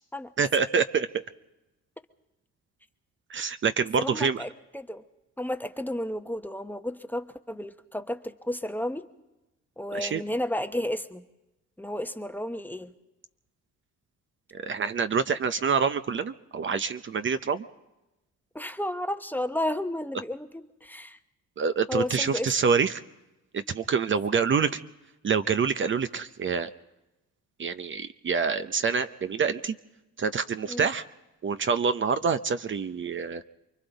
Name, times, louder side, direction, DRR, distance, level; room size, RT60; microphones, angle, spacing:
voice 1, 0.4-1.2 3.3-4.4 9.9-10.2 14.5-17.7 21.6-23.0 23.5-24.7 25.2-26.7 27.6-29.7 30.2-31.0 31.4-33.4, right 6 dB, 40° right, 11 dB, 0.7 m, -26 dB
voice 2, 4.0-5.0 5.4-9.1 9.8-11.2 11.8-12.9 18.5-21.2 21.9-22.5 24.3-24.5 30.7-30.9, left 1 dB, 5° left, 8 dB, 0.9 m, -32 dB
28.5 x 23.0 x 4.0 m, 0.99 s
cardioid pair, 90°, 30 cm